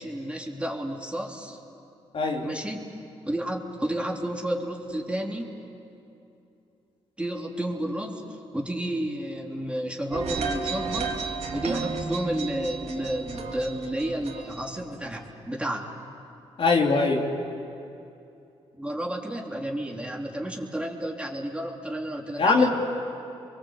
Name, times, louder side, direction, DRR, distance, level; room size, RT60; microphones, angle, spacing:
voice 1, 0.0-1.6 2.4-3.0 3.3-5.5 7.2-11.2 11.5-15.9 18.8-22.7, right 1 dB, 10° right, 0 dB, 3.5 m, -31 dB
voice 2, 2.1-2.5 16.6-17.2 22.4-22.7, left 3 dB, 55° left, 0 dB, 3.2 m, -21 dB
sound 1, 10.1-15.2, right 4 dB, 70° right, 3.0 m, -33 dB
30.0 x 23.0 x 8.1 m, 2.7 s
cardioid pair, 70°, 11 cm